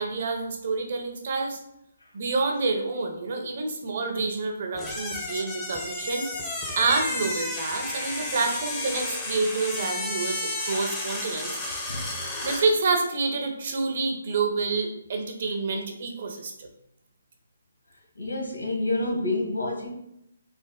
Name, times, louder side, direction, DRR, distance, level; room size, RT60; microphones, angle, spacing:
voice 1, 0.0-1.6 2.1-6.3 6.8-11.6 12.4-16.7, right 3 dB, 50° right, 3 dB, 0.9 m, -28 dB
sound 1, 4.7-12.7, left 2 dB, 15° left, 0.9 m, -32 dB
voice 2, 11.9-12.2 18.1-19.9, left 2 dB, 85° left, 0 dB, 1.5 m, -29 dB
5.3 x 3.9 x 2.2 m, 0.78 s
figure-of-eight pair, 145°, 0 cm